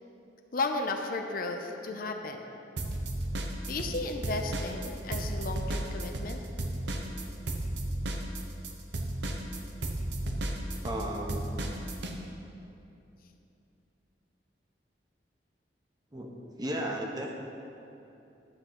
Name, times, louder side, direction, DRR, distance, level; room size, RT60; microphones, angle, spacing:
voice 1, 0.5-2.5 3.7-6.4, left 2 dB, 55° left, 4 dB, 0.6 m, -34 dB
sound 1, 2.8-4.0 4.2-12.1, right 1 dB, 85° right, 0.9 m, -33 dB
voice 2, 10.8-11.5 16.1-17.3, right 1 dB, 25° right, 0 dB, 0.9 m, -35 dB
11.5 x 3.9 x 7.3 m, 2.8 s
head